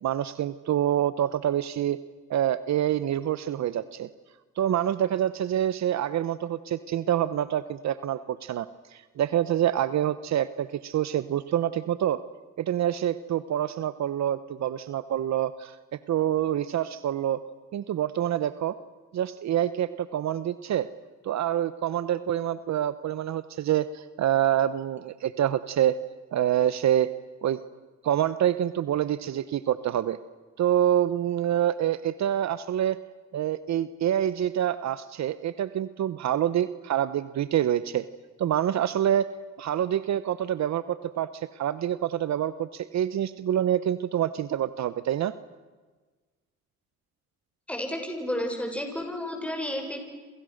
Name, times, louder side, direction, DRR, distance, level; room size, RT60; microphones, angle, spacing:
voice 1, 0.0-2.0 2.3-4.1 4.6-12.2 12.6-15.8 16.1-17.4 17.7-18.7 19.1-20.9 21.2-26.0 26.3-27.1 27.4-27.6 28.0-30.2 30.6-33.0 33.3-38.0 38.4-39.3 39.6-45.3, right 11 dB, 65° right, 14 dB, 1.0 m, -26 dB
voice 2, 47.7-50.0, left 1 dB, 5° left, 3 dB, 6.9 m, -31 dB
28.0 x 27.5 x 6.6 m, 1.3 s
cardioid pair, 90°, 30 cm